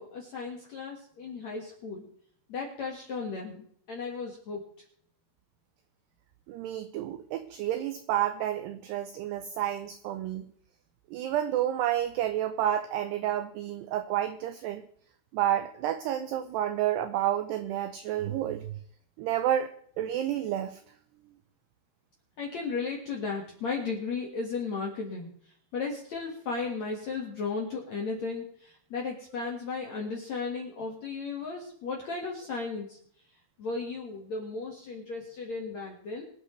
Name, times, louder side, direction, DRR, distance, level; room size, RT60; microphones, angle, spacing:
voice 1, 0.0-2.1 2.5-4.7 22.4-33.0 33.6-36.2, left 4 dB, 60° left, -1 dB, 1.9 m, -35 dB
voice 2, 6.5-10.5 11.1-14.8 15.3-18.7 19.2-20.8, right 11 dB, 85° right, 10 dB, 2.4 m, -30 dB
25.0 x 8.4 x 3.2 m, 0.62 s
omnidirectional pair, 5.6 m